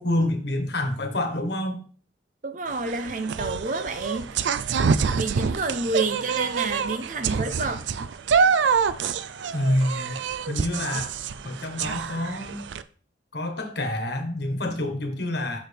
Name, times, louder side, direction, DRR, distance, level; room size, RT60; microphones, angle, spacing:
voice 1, 0.0-1.8 9.5-10.2 10.5-11.1 11.4-12.6 13.3-15.6, left 1 dB, 70° left, 4 dB, 1.4 m, -27 dB
voice 2, 2.4-4.5 5.1-7.8, right 3 dB, 45° right, 7 dB, 0.7 m, -29 dB
sound 1, 2.7-12.8, right 6 dB, 85° right, 0.4 m, -26 dB
6.5 x 5.8 x 3.5 m, 0.43 s
head